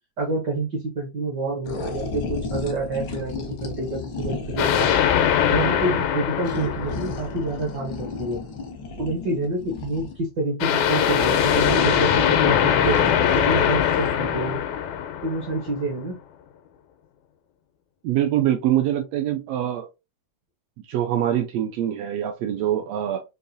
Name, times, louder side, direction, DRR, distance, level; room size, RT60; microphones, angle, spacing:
voice 1, 0.2-4.9 5.5-8.4 9.0-14.6 15.2-16.2, right 2 dB, 65° right, 1.1 m, -28 dB
sound 1, 1.6-5.0 6.4-10.3 11.2-14.1, left 3 dB, 70° left, 1.1 m, -33 dB
sound 2, 4.6-7.7 10.6-15.8, left 9 dB, 90° left, 2.1 m, -21 dB
voice 2, 18.0-19.9 20.9-23.2, right 11 dB, 80° right, 1.4 m, -24 dB
5.3 x 2.6 x 2.6 m
omnidirectional pair, 3.3 m